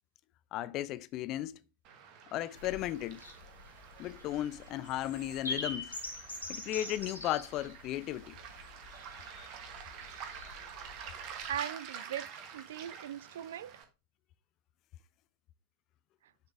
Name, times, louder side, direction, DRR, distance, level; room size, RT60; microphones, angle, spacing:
voice 1, 0.5-1.6 2.3-3.2 4.0-5.9 6.5-8.3 9.4-9.5, left 13 dB, 35° left, 0.4 m, -35 dB
Waves surf, 1.8-13.8, right 7 dB, 40° right, 1.3 m, -48 dB
sound 1, 2.5-11.5, left 2 dB, 80° left, 1.7 m, -45 dB
voice 2, 11.5-12.3 12.5-13.7, right 10 dB, 60° right, 0.3 m, -39 dB
7.0 x 5.2 x 3.4 m
figure-of-eight pair, 90°, 0 cm